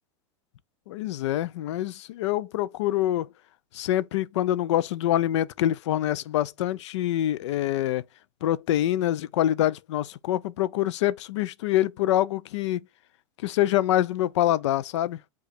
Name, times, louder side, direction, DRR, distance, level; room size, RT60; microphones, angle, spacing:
voice 1, 0.9-3.3 3.7-8.0 8.4-12.8 13.4-15.2, left 13 dB, 80° left, 0.4 m, -25 dB
4.9 x 2.3 x 4.2 m
supercardioid pair, 175°, 15 cm